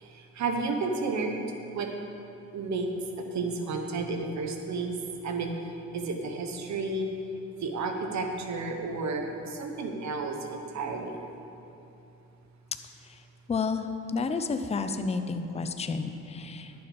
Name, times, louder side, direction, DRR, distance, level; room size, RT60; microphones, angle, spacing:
voice 1, 0.0-1.4 1.7-1.9 2.5-2.9 3.3-5.0 5.2-5.5 5.9-7.1 7.6-11.1, right 3 dB, 65° right, 4 dB, 1.2 m, -32 dB
voice 2, 13.5-13.9 14.1-16.7, left 4 dB, 20° left, 8 dB, 0.6 m, -30 dB
11.5 x 6.9 x 5.2 m, 2.8 s
cardioid pair, 90°, 30 cm